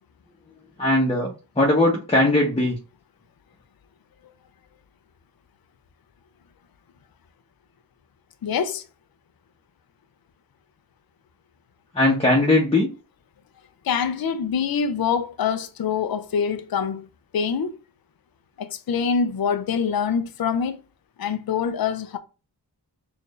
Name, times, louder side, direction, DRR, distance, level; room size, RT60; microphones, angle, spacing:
voice 1, 0.8-2.8 11.9-12.9, left 2 dB, 15° left, 0.9 m, -19 dB
voice 2, 8.4-8.8 13.8-17.1 17.3-17.8 18.6-20.8 21.2-22.2, left 6 dB, 60° left, 0.5 m, -25 dB
4.4 x 2.6 x 3.2 m
wide cardioid pair, 65°, 42 cm